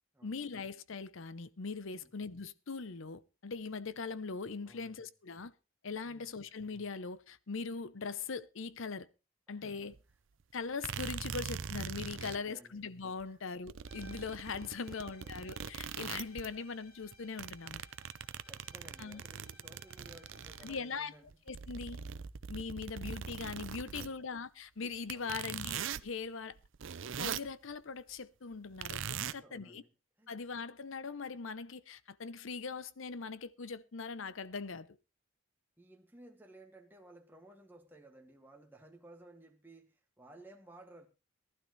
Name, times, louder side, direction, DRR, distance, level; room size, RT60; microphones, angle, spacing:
voice 1, 0.2-5.5 5.8-9.1 9.5-9.9 10.5-17.8 19.0-19.2 20.6-21.1 21.5-22.0 22.5-26.6 27.2-29.8 30.3-34.9, left 4 dB, 65° left, 0.7 m, -41 dB
voice 2, 4.7-5.0 6.0-6.5 9.6-10.0 12.1-12.8 13.2-13.4 14.7-15.3 18.3-21.4 23.8-24.2 25.1-25.6 29.2-29.9 30.2-30.3 35.8-41.1, right 1 dB, 10° right, 2.0 m, -57 dB
sound 1, 9.9-10.0 10.8-12.4 13.2-13.3 13.7-16.6 17.0-20.8 21.3-24.1 25.1-26.1 26.5-27.5 28.8-29.3, right 7 dB, 60° right, 0.6 m, -41 dB
sound 2, 13.8-21.3, left 1 dB, 90° left, 5.9 m, -60 dB
18.5 x 12.0 x 3.2 m
head